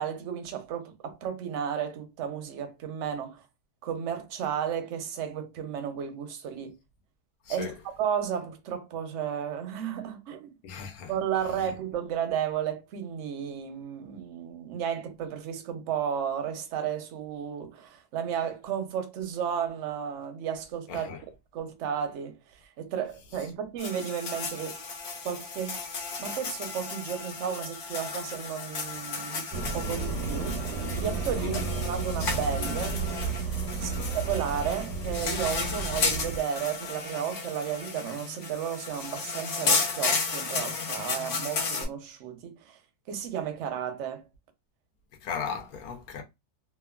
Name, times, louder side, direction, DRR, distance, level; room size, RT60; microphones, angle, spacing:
voice 1, 0.0-3.4 3.8-6.8 7.5-7.7 8.0-10.5 11.1-21.2 21.5-22.4 22.8-24.8 25.2-25.8 26.2-30.6 31.0-33.0 33.8-42.8 43.1-44.3, right 8 dB, 65° right, 0.8 m, -33 dB
voice 2, 10.6-11.1 20.9-21.2 31.4-31.7 33.8-34.2 45.2-46.2, left 6 dB, 70° left, 1.1 m, -37 dB
sound 1, 23.8-41.8, left 4 dB, 85° left, 0.4 m, -33 dB
sound 2, 29.5-36.4, right 4 dB, 90° right, 1.2 m, -32 dB
2.8 x 2.3 x 2.3 m
omnidirectional pair, 1.7 m